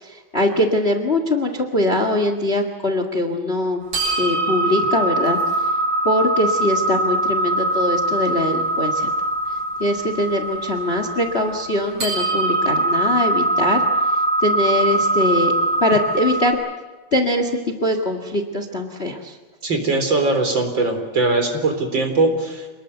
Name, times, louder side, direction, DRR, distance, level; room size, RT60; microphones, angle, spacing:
voice 1, 0.0-3.8 4.2-5.4 6.0-9.1 9.8-13.8 14.4-15.5 15.8-16.6 17.1-19.3, left 1 dB, 60° left, 6 dB, 0.6 m, -22 dB
sound 1, 3.9-16.5, right 2 dB, 50° right, 9.2 m, -22 dB
voice 2, 19.6-22.7, right 3 dB, 30° right, 5 dB, 4.3 m, -20 dB
27.5 x 21.0 x 8.1 m, 1.3 s
omnidirectional pair, 4.4 m